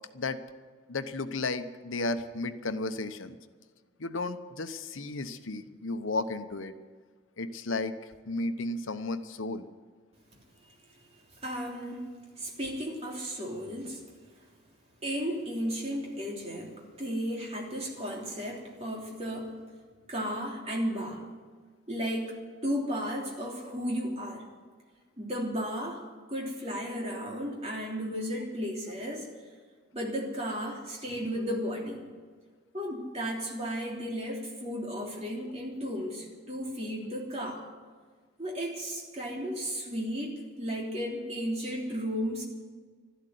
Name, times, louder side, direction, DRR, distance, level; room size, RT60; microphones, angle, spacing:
voice 1, 0.9-3.4 4.0-6.7 7.4-9.7, left 2 dB, 80° left, 10 dB, 1.0 m, -33 dB
voice 2, 11.4-12.1 12.4-14.0 15.0-19.5 20.1-21.2 21.9-22.4 22.6-24.4 25.2-26.0 26.3-29.3 29.9-32.0 32.7-37.6 38.4-42.4, equal, 30° right, -2 dB, 3.3 m, -34 dB
13.0 x 12.0 x 9.3 m, 1.5 s
head